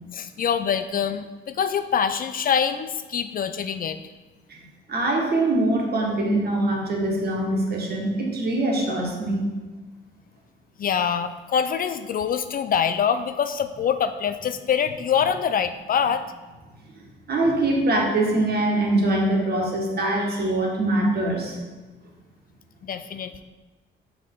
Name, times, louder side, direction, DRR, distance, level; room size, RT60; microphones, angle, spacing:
voice 1, 0.1-4.0 10.8-16.3 22.8-23.4, left 7 dB, 45° left, 11 dB, 0.4 m, -25 dB
voice 2, 4.9-9.4 16.9-21.6, right 2 dB, 55° right, -1 dB, 1.6 m, -23 dB
6.0 x 5.4 x 3.8 m, 1.2 s
cardioid pair, 90°, 20 cm